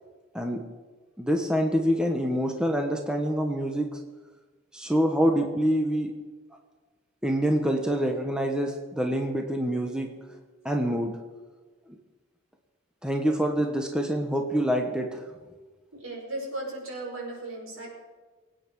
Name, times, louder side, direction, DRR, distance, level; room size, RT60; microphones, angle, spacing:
voice 1, 1.2-4.0 4.7-6.2 7.2-10.1 10.6-11.2 13.0-15.3, equal, 5° right, 2 dB, 1.1 m, -26 dB
voice 2, 15.9-17.9, right 2 dB, 70° right, -1 dB, 5.2 m, -36 dB
23.0 x 9.1 x 4.7 m, 1.3 s
head